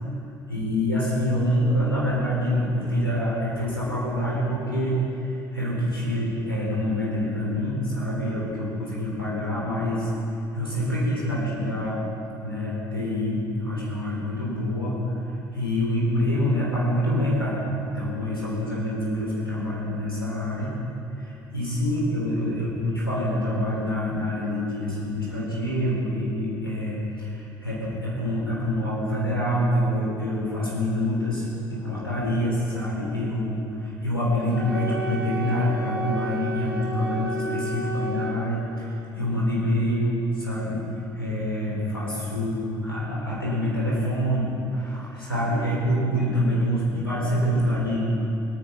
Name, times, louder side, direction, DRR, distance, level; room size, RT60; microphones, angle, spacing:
voice 1, 0.5-10.1 10.5-12.0 12.4-15.2 15.5-20.7 21.2-40.8 41.1-48.0, equal, 90° left, -6 dB, 3.6 m, -26 dB
Wind instrument woodwind instrument, 34.5-38.4, right 1 dB, 85° right, 1.8 m, -31 dB
24.0 x 9.4 x 5.8 m, 2.8 s
figure-of-eight pair, 60°, 12 cm